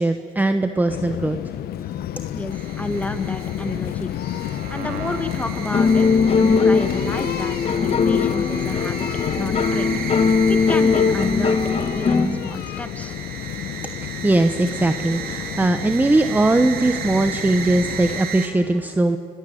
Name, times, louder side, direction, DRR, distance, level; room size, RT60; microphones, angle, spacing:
voice 1, 0.0-1.4 13.8-19.2, right 2 dB, 10° right, 8 dB, 0.9 m, -20 dB
sound 1, 0.9-18.2, left 12 dB, 65° left, 0.7 m, -30 dB
voice 2, 2.3-4.1 4.7-9.1 9.4-11.6 11.9-13.2, left 1 dB, 10° left, 8 dB, 1.7 m, -30 dB
sound 2, 2.5-18.5, right 7 dB, 60° right, 2.4 m, -35 dB
sound 3, 5.7-12.3, left 5 dB, 35° left, 1.3 m, -20 dB
25.5 x 15.0 x 9.2 m, 2.5 s
cardioid pair, 110°, 17 cm